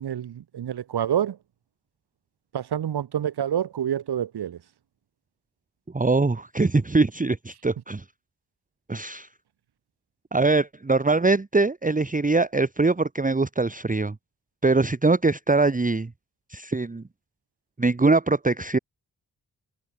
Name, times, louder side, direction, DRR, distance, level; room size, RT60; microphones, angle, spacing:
voice 1, 0.0-1.4 2.5-4.6, right 9 dB, 70° right, 0.8 m, -27 dB
voice 2, 5.9-8.0 8.9-9.3 10.3-14.1 14.6-16.1 16.5-17.0 17.8-18.8, right 3 dB, 20° right, 1.0 m, -22 dB
cardioid pair, 50°, 41 cm